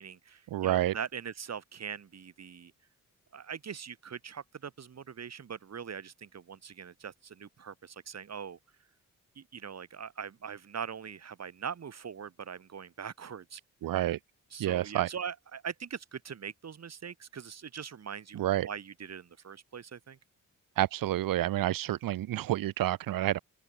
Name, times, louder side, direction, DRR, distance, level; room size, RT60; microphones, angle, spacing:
voice 1, 0.0-2.7 3.3-8.6 9.4-13.9 14.5-20.2, right 7 dB, 50° right, 5.1 m, -42 dB
voice 2, 0.5-0.9 13.8-14.2 14.6-15.1 18.3-18.7 20.8-23.4, right 13 dB, 90° right, 1.1 m, -29 dB
open air
cardioid pair, 105°, 33 cm